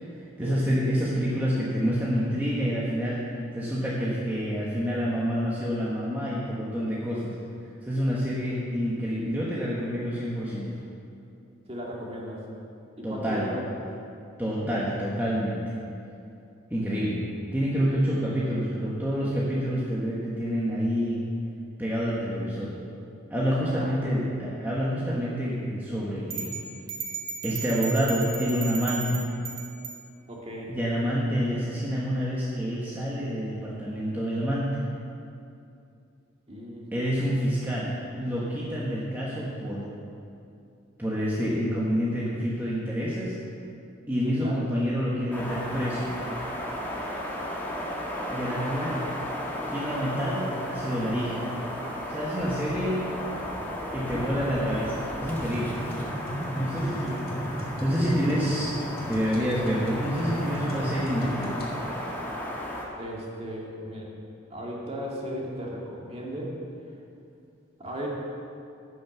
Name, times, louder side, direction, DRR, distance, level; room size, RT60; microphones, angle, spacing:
voice 1, 0.4-3.3 3.5-7.3 7.8-10.7 13.0-13.5 14.4-15.7 16.7-17.3 17.5-21.2 21.8-22.8 23.3-26.6 27.4-29.2 30.7-34.8 36.9-39.9 41.0-43.4 44.1-46.1 48.3-49.0 49.7-51.5 52.1-53.1 53.9-55.8 56.5-57.2 57.8-58.7 59.0-61.5, equal, 10° right, -7 dB, 1.3 m, -28 dB
voice 2, 11.7-12.4 13.0-13.9 23.7-24.1 30.3-30.8 36.5-37.1 44.2-44.6 48.7-48.9 56.8-57.2 58.0-58.5 62.9-64.1 64.5-66.5 67.8-68.1, equal, 30° right, -3 dB, 2.1 m, -36 dB
sound 1, 26.3-30.0, right 6 dB, 70° right, 1.3 m, -35 dB
sound 2, 45.3-62.9, equal, 10° left, 1.5 m, -34 dB
sound 3, 55.4-61.7, equal, 50° left, 2.3 m, -35 dB
14.5 x 6.4 x 6.1 m, 2.5 s
head